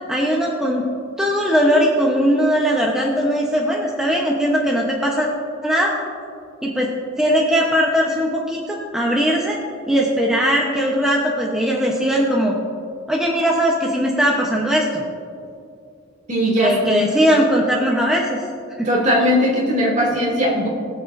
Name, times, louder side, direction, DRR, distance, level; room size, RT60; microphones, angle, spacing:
voice 1, 0.1-0.8 1.2-5.3 5.6-6.0 6.6-6.9 7.2-9.6 9.9-12.6 13.1-15.0 16.4-18.4 18.8-18.9, equal, 5° right, -3 dB, 1.0 m, -19 dB
voice 2, 16.3-17.1 18.8-20.7, equal, 35° right, -3 dB, 2.6 m, -19 dB
22.0 x 7.6 x 2.7 m, 2.5 s
head